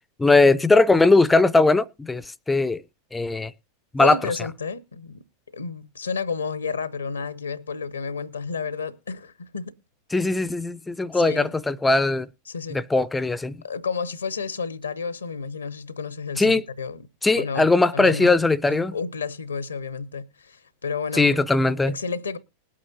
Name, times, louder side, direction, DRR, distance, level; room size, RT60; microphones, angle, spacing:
voice 1, 0.2-2.8 3.1-3.5 3.9-4.2 10.1-12.3 12.7-13.6 16.4-16.6 17.2-18.9 21.1-21.9, left 3 dB, 10° left, 0.5 m, -19 dB
voice 2, 4.0-5.2 5.5-9.7 11.1-11.5 12.5-12.8 13.6-17.1 17.4-17.7 17.9-18.4 18.7-21.4 21.9-22.4, left 5 dB, 75° left, 0.7 m, -31 dB
20.5 x 8.6 x 2.7 m
figure-of-eight pair, 90°, 0 cm